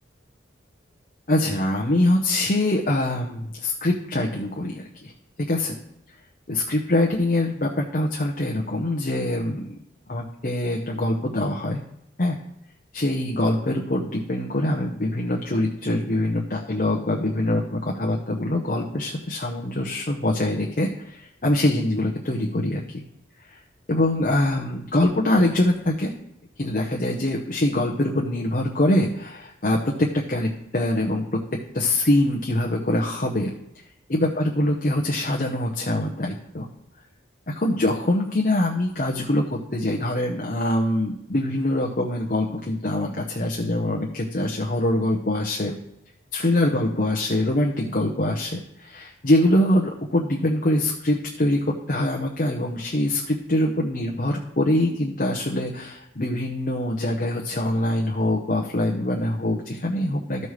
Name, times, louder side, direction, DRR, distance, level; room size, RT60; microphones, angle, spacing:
voice 1, 1.3-5.1 5.5-5.7 6.5-9.7 10.1-11.8 12.2-12.4 12.9-23.0 23.4-23.5 23.9-26.1 26.6-31.4 31.7-33.5 34.1-36.7 37.6-45.7 46.3-60.5, left 1 dB, 45° left, -1 dB, 0.8 m, -24 dB
14.0 x 5.4 x 3.2 m, 0.84 s
head